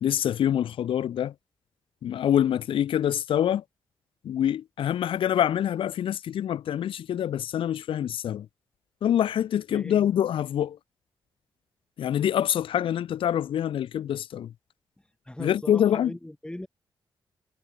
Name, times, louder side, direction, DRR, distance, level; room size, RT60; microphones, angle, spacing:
voice 1, 0.0-1.3 2.0-3.6 4.2-8.5 9.0-10.8 12.0-14.5 15.4-16.1, left 10 dB, 80° left, 0.7 m, -25 dB
voice 2, 9.7-10.1 15.0-16.7, left 1 dB, 10° left, 7.6 m, -39 dB
cardioid pair, 65°, 9 cm